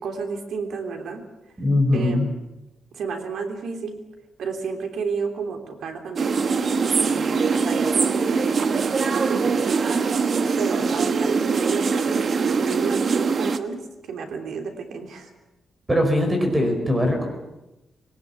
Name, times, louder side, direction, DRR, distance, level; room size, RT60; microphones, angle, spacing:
voice 1, 0.0-1.2 1.9-2.3 2.9-4.0 4.4-9.9 10.6-12.2 12.5-15.3, right 5 dB, 75° right, 5 dB, 3.4 m, -32 dB
voice 2, 1.6-2.3 15.9-17.3, left 1 dB, 15° right, 4 dB, 5.0 m, -21 dB
sound 1, 6.2-13.6, right 5 dB, 40° right, 1.2 m, -22 dB
21.0 x 19.0 x 8.5 m, 0.98 s
wide cardioid pair, 160°, 0 cm